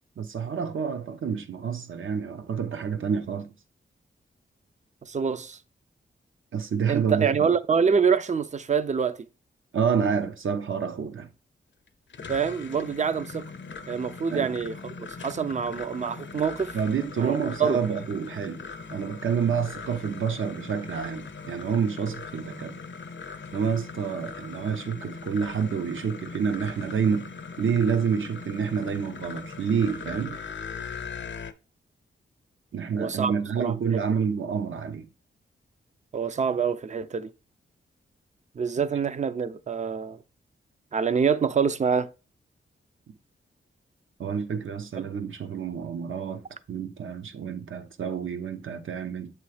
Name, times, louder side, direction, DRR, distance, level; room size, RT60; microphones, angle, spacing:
voice 1, 0.2-3.6 6.5-7.5 9.7-11.3 14.3-14.5 16.7-18.6 18.9-22.8 23.5-27.3 27.6-30.4 32.7-35.1 44.2-49.3, right 6 dB, 70° right, 0.8 m, -28 dB
voice 2, 5.0-5.6 6.9-9.3 12.3-13.5 13.9-16.8 17.2-17.8 33.0-33.3 33.6-33.7 36.1-37.3 38.6-40.2 40.9-42.1, right 6 dB, 35° right, 0.5 m, -26 dB
sound 1, 11.9-31.5, left 5 dB, 60° left, 0.7 m, -40 dB
7.7 x 3.1 x 4.8 m
wide cardioid pair, 85°, 21 cm